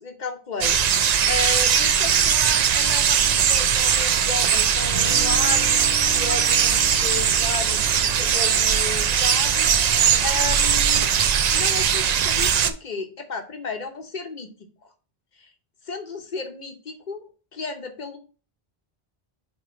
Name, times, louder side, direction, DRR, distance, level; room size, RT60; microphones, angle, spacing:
voice 1, 0.0-10.0 10.2-11.1 11.5-14.5 15.4-15.5 15.8-18.2, left 4 dB, 50° left, 6 dB, 1.0 m, -33 dB
sound 1, 0.6-12.7, right 8 dB, 55° right, 0.5 m, -20 dB
Guitar, 4.8-10.9, left 1 dB, 25° right, 2.2 m, -39 dB
6.8 x 3.2 x 4.3 m, 0.36 s
omnidirectional pair, 1.0 m